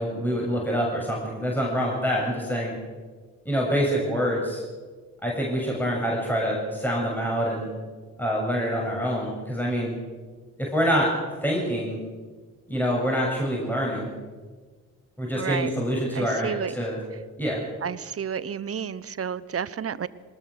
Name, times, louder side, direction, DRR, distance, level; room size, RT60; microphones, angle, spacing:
voice 1, 0.0-2.7 3.5-4.6 5.2-7.7 8.2-10.0 10.6-11.1 11.4-12.0 12.7-14.1 15.2-17.0 17.4-17.6, equal, 5° left, -3 dB, 7.3 m, -26 dB
voice 2, 15.3-15.7 16.1-16.7 17.8-20.1, right 7 dB, 30° right, 18 dB, 1.1 m, -31 dB
24.0 x 20.0 x 6.6 m, 1.4 s
figure-of-eight pair, 45°, 44 cm